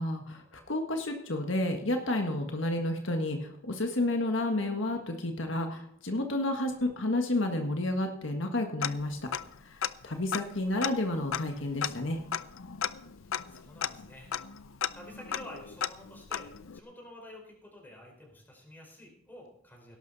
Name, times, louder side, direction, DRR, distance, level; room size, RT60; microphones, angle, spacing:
voice 1, 0.0-9.2 9.6-12.2, left 1 dB, 65° left, 4 dB, 1.5 m, -31 dB
Tick-tock, 8.8-9.6 9.8-9.9 10.3-16.8, left 8 dB, 80° left, 0.6 m, -36 dB
voice 2, 13.2-14.3 14.6-20.0, left 1 dB, 10° left, -1 dB, 4.7 m, -50 dB
17.5 x 11.5 x 4.1 m, 0.76 s
head